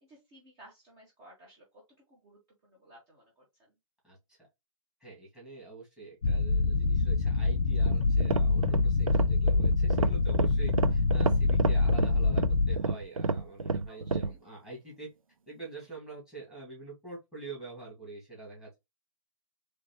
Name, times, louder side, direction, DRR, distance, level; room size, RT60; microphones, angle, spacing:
voice 1, 0.0-1.6 2.1-3.7 13.9-14.3, right 1 dB, 20° right, -3 dB, 1.2 m, -57 dB
voice 2, 4.0-4.4 5.0-15.1 15.5-18.7, right 3 dB, 5° right, -3 dB, 2.2 m, -46 dB
sound 1, 6.2-12.8, left 3 dB, 55° left, 0.7 m, -25 dB
sound 2, 7.7-14.4, right 4 dB, 80° right, 0.5 m, -31 dB
3.9 x 3.3 x 3.0 m, 0.21 s
figure-of-eight pair, 135°, 17 cm